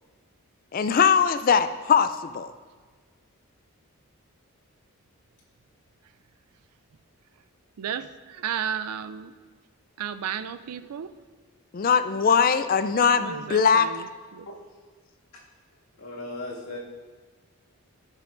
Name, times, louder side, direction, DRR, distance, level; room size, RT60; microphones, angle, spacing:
voice 1, 0.7-2.5 11.7-13.9, left 6 dB, 40° left, 11 dB, 0.3 m, -21 dB
voice 2, 7.8-9.3 10.0-11.1 13.2-14.1 14.3-14.5, right 8 dB, 90° right, 12 dB, 0.4 m, -33 dB
voice 3, 15.9-16.8, left 2 dB, 80° left, -3 dB, 2.0 m, -36 dB
16.0 x 5.7 x 2.5 m, 1.5 s
head